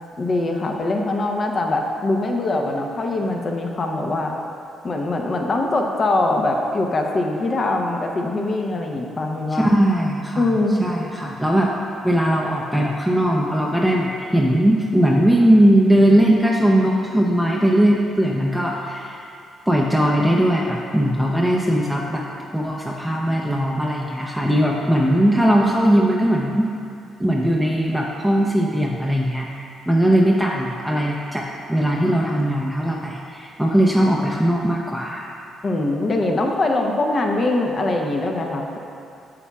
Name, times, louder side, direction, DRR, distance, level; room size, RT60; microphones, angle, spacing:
voice 1, 0.2-4.3 4.8-9.7 10.4-10.8 35.6-38.8, left 2 dB, 40° left, 2 dB, 0.7 m, -22 dB
voice 2, 9.5-11.7 12.0-19.2 19.7-22.3 22.5-26.7 27.2-29.5 29.9-35.3, right 1 dB, 5° right, -2 dB, 0.6 m, -19 dB
8.5 x 7.1 x 2.3 m, 2.6 s
cardioid pair, 90°, 0 cm